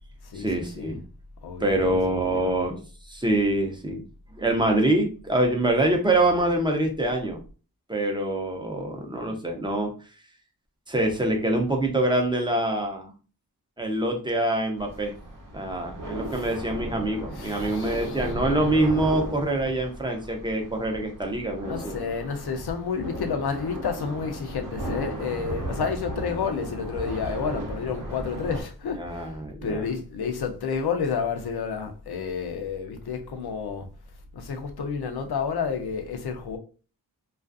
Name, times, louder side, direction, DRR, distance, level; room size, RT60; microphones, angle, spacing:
voice 1, 0.3-1.0 1.6-4.0 4.3-7.4 7.9-9.9 10.9-13.1 13.8-15.2 15.5-22.0 29.0-29.8, right 1 dB, 10° right, 0.5 m, -25 dB
voice 2, 1.4-2.0 2.3-2.5 16.3-16.5 17.3-18.3 21.6-29.4 29.6-33.9 34.3-36.6, left 6 dB, 75° left, 0.6 m, -30 dB
sound 1, 14.8-28.6, right 1 dB, 55° right, 0.7 m, -36 dB
2.4 x 2.4 x 2.4 m
wide cardioid pair, 95°, 38 cm